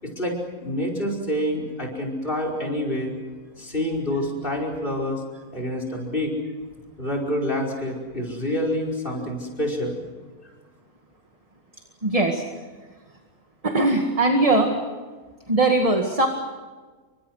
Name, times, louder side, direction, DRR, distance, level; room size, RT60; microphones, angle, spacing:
voice 1, 0.0-3.1 3.6-5.2 5.5-6.3 7.0-10.0 10.4-10.5, left 1 dB, 40° left, 1 dB, 5.6 m, -27 dB
voice 2, 12.0-12.4 13.6-14.7 15.5-16.3, right 2 dB, 25° right, 3 dB, 2.0 m, -20 dB
29.5 x 25.0 x 6.5 m, 1.4 s
omnidirectional pair, 1.4 m